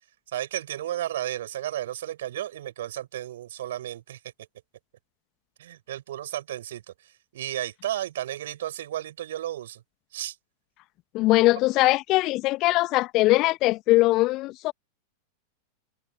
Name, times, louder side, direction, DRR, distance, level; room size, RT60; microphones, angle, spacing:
voice 1, 0.3-4.2 5.6-9.8 10.1-10.4, right 12 dB, 60° right, 7.6 m, -33 dB
voice 2, 11.1-14.7, left 19 dB, 40° left, 1.5 m, -21 dB
figure-of-eight pair, 90°, 0 cm